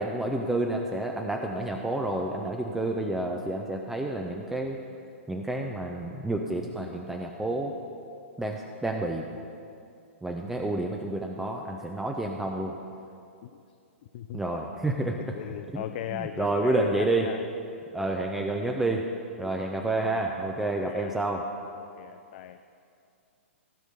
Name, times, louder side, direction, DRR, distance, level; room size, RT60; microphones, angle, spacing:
voice 1, 0.0-4.8 5.3-7.7 8.4-9.3 10.2-12.8 14.3-15.3 15.7-15.8 16.1-17.3 17.9-19.0 19.4-21.5, right 2 dB, 5° right, 1 dB, 0.6 m, -29 dB
voice 2, 15.2-17.4 20.6-21.2 22.0-22.6, left 11 dB, 50° left, 10 dB, 0.4 m, -38 dB
15.5 x 5.3 x 6.6 m, 2.5 s
hypercardioid pair, 125°, 7 cm